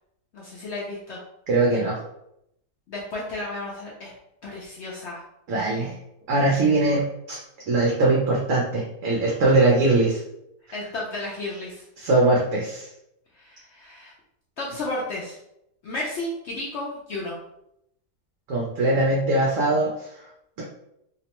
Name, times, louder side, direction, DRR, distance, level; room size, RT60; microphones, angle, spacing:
voice 1, 0.3-1.2 2.9-4.2 4.4-5.2 10.7-11.9 13.3-14.1 14.6-15.4 15.8-17.4, left 2 dB, 75° left, -4 dB, 0.6 m, -33 dB
voice 2, 1.5-2.0 5.5-6.0 6.3-7.4 7.7-10.2 12.0-12.9 18.5-20.3, right 2 dB, 65° right, -4 dB, 0.8 m, -21 dB
2.8 x 2.1 x 2.9 m, 0.80 s
omnidirectional pair, 1.7 m